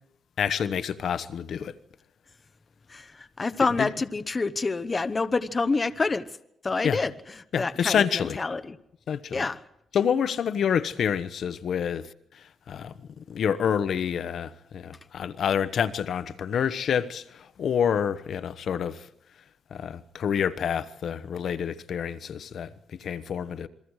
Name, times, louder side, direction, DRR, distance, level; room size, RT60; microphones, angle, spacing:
voice 1, 0.4-1.7 3.6-3.9 6.8-7.0 7.5-8.4 9.1-9.4 9.9-19.1 19.7-23.7, left 8 dB, 60° left, 1.1 m, -28 dB
voice 2, 2.9-6.3 6.6-7.1 7.6-8.8 9.3-9.6, left 3 dB, 25° left, 1.0 m, -27 dB
28.0 x 23.0 x 4.9 m
cardioid pair, 135°, 0 cm